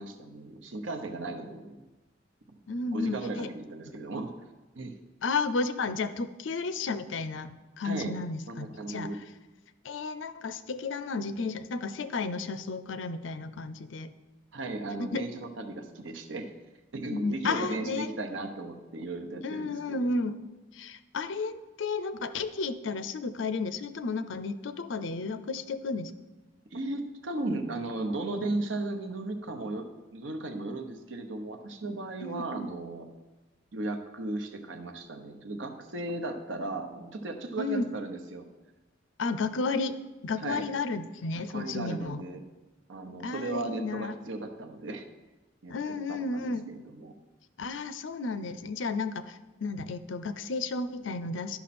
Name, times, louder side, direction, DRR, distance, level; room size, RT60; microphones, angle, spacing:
voice 1, 0.0-1.8 2.9-4.3 4.8-4.9 7.8-8.1 8.5-9.2 14.5-16.5 16.9-20.0 26.7-33.1 33.7-38.5 40.4-40.6 41.5-42.4 42.9-45.1 45.6-45.7 46.1-46.5 46.7-47.1, right 2 dB, 75° right, 5 dB, 1.0 m, -36 dB
voice 2, 2.7-3.5 5.2-9.2 9.8-14.1 15.0-15.3 17.1-18.1 19.4-20.4 20.7-26.1 32.2-32.7 37.6-37.9 39.2-42.2 43.2-44.2 45.7-46.6 47.6-51.6, left 3 dB, 75° left, 13 dB, 0.5 m, -33 dB
11.5 x 5.8 x 4.3 m, 1.1 s
head